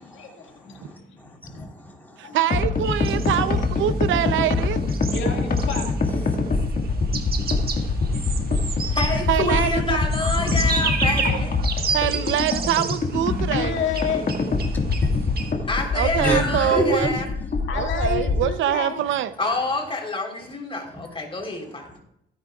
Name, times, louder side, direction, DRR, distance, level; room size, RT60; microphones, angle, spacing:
voice 1, 0.0-1.7 2.2-2.4 3.2-3.4 5.1-5.8 6.6-6.7 11.2-11.5 13.3-14.3 17.7-19.0, left 6 dB, 75° left, 2 dB, 2.0 m, -31 dB
voice 2, 0.7-2.1 7.3-9.2 10.2-10.6 15.0-15.2 16.2-17.1 20.9-21.0 21.4-22.0, left 1 dB, 10° left, -1 dB, 4.0 m, -31 dB
voice 3, 2.2-4.8 9.3-10.0 11.9-13.8 15.9-17.1 17.7-19.3, right 11 dB, 80° right, 13 dB, 0.7 m, -24 dB
sound 1, 2.5-18.5, left 4 dB, 45° left, 1.8 m, -24 dB
sound 2, 2.8-15.5, right 5 dB, 50° right, 1.6 m, -32 dB
voice 4, 8.9-11.3 15.7-17.3 19.4-21.8, left 2 dB, 25° left, 2 dB, 3.8 m, -27 dB
17.0 x 9.8 x 2.4 m, 0.77 s
cardioid pair, 90°, 20 cm